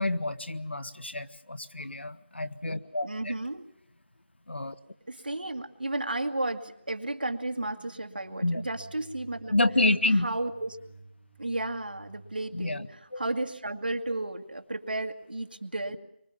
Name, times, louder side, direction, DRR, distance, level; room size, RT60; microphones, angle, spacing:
voice 1, 0.0-3.3 4.5-4.7 8.4-8.6 9.5-10.3 12.5-12.9 13.1-13.2, left 2 dB, 75° left, 11 dB, 1.6 m, -28 dB
voice 2, 3.0-3.6 5.1-9.6 10.1-10.8 11.4-16.0, right 2 dB, 55° right, 4 dB, 2.0 m, -33 dB
sound 1, 7.6-13.6, right 2 dB, ahead, 7.3 m, -52 dB
25.0 x 24.5 x 7.2 m, 0.78 s
figure-of-eight pair, 175°, 6 cm